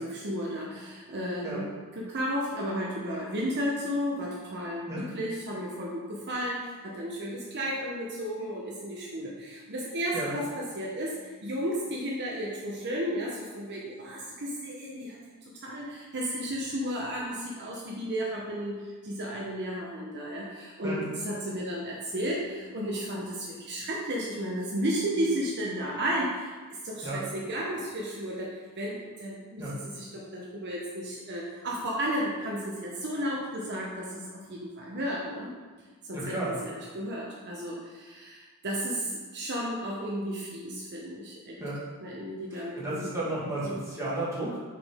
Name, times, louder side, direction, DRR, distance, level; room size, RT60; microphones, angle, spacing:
voice 1, 0.0-35.5 36.1-36.4 36.6-41.6 42.0-43.1 43.6-43.8, equal, 50° right, -4 dB, 0.9 m, -33 dB
voice 2, 36.1-36.6 41.6-41.8 42.5-44.7, right 1 dB, 15° right, -8 dB, 1.7 m, -33 dB
5.9 x 5.0 x 3.6 m, 1.4 s
head